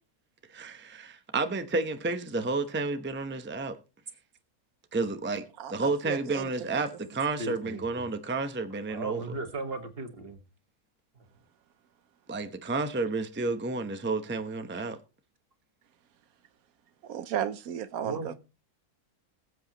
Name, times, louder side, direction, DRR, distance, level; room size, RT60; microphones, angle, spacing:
voice 1, 0.5-3.7 4.9-5.4 5.7-9.3 12.3-15.0, right 3 dB, 10° right, 0.7 m, -31 dB
voice 2, 5.6-6.5 17.0-18.3, right 9 dB, 85° right, 1.2 m, -34 dB
voice 3, 7.4-8.0 8.9-10.4 11.2-11.3 18.0-18.3, right 3 dB, 45° right, 1.9 m, -37 dB
21.0 x 8.0 x 3.0 m
omnidirectional pair, 1.5 m